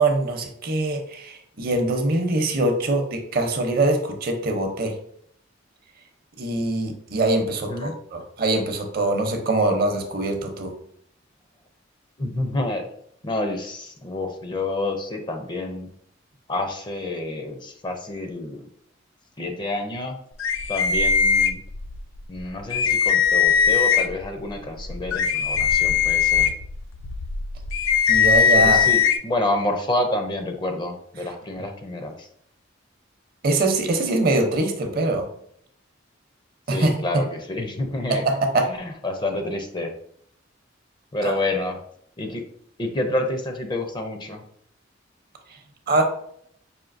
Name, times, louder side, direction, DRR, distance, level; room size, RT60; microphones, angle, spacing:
voice 1, 0.0-4.9 6.4-10.7 28.1-28.8 31.6-31.7 33.4-35.3 36.7-37.2 38.1-38.7 41.2-41.3 45.9-46.0, right 2 dB, 50° right, 4 dB, 0.7 m, -23 dB
voice 2, 12.2-12.9 13.2-15.9 16.5-18.6 19.4-20.2 20.7-21.6 22.3-26.5 28.6-32.3 36.7-38.2 38.7-39.9 41.1-41.8 42.2-42.4 42.8-44.4, left 2 dB, 25° left, 5 dB, 0.4 m, -28 dB
sound 1, 20.4-22.0 22.4-22.5 22.7-24.3 24.8-29.2, left 7 dB, 90° left, 0.3 m, -20 dB
5.0 x 2.6 x 2.5 m, 0.68 s
head